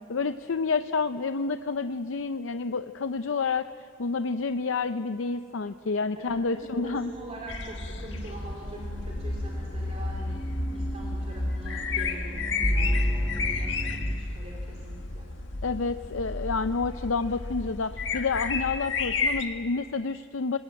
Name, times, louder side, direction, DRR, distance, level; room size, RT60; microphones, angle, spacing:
voice 1, 0.1-3.7 4.0-7.1 15.6-20.6, left 4 dB, 85° left, 10 dB, 0.6 m, -29 dB
voice 2, 6.1-10.4 10.7-15.3, right 1 dB, 35° right, -2 dB, 3.1 m, -43 dB
sound 1, 6.9-14.2, equal, 5° left, 1.7 m, -33 dB
sound 2, 7.5-19.5, left 3 dB, 70° left, 1.7 m, -32 dB
26.5 x 20.0 x 9.0 m, 2.5 s
head